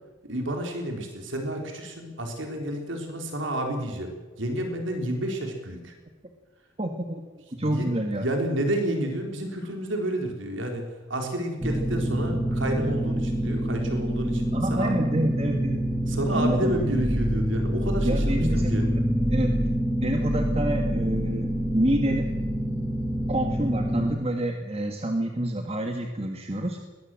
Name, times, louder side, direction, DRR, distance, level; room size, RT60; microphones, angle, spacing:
voice 1, 0.2-5.9 7.6-7.9 8.2-14.9 16.1-18.9, right 1 dB, 70° right, 3 dB, 3.9 m, -30 dB
voice 2, 6.8-8.3 14.5-15.9 16.3-16.8 17.1-17.2 18.0-19.0 19.3-19.6 20.0-22.3 23.3-26.8, right 1 dB, 30° right, 4 dB, 1.8 m, -28 dB
sound 1, 11.6-24.2, equal, 10° right, 1.4 m, -26 dB
21.5 x 20.5 x 7.7 m, 1.3 s
head